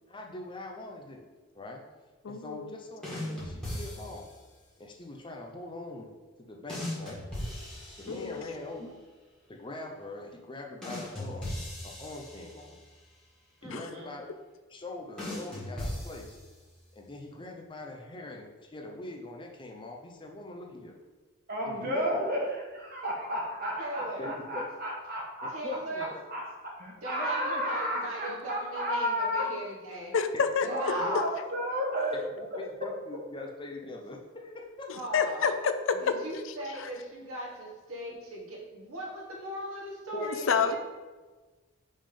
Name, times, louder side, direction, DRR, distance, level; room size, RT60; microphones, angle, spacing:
voice 1, 0.1-1.3 1.5-1.8 2.3-4.3 4.8-6.1 6.4-7.2 8.0-8.9 9.5-11.6 11.8-12.8 13.6-14.3 14.7-16.4 16.9-21.0 21.6-22.1 24.2-24.7 25.4-26.2 27.2-27.6 30.3-31.2 32.4-35.0 40.1-40.8, left 2 dB, 25° left, 1 dB, 0.6 m, -42 dB
voice 2, 2.2-2.7 8.1-8.4 30.1-30.7 35.1-36.2 40.2-40.8, left 6 dB, 65° left, 9 dB, 0.4 m, -27 dB
sound 1, 3.0-4.4 6.7-8.7 10.8-13.0 15.2-16.8, left 1 dB, 5° left, 1.8 m, -38 dB
voice 3, 13.6-14.1 23.8-24.3 25.5-26.1 27.0-30.2 30.6-31.1 34.9-35.5 36.0-40.8, right 1 dB, 85° right, -3 dB, 1.6 m, -39 dB
voice 4, 21.5-25.5 26.3-29.5 30.7-32.2, equal, 45° right, -1 dB, 1.4 m, -32 dB
5.4 x 3.6 x 5.2 m, 1.3 s
head